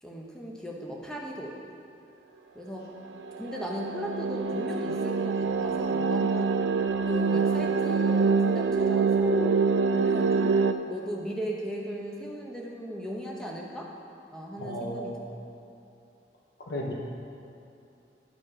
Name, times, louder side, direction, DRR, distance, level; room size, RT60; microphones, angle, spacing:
voice 1, 0.0-1.5 2.5-2.8 3.4-6.5 7.1-9.6 9.9-10.5 10.9-13.9 14.3-15.1, equal, 5° left, -2 dB, 0.8 m, -37 dB
sound 1, 3.0-10.7, right 4 dB, 90° right, 0.4 m, -25 dB
voice 2, 14.6-15.3 16.7-16.9, equal, 70° left, -1 dB, 0.8 m, -34 dB
10.0 x 5.3 x 4.8 m, 2.8 s
head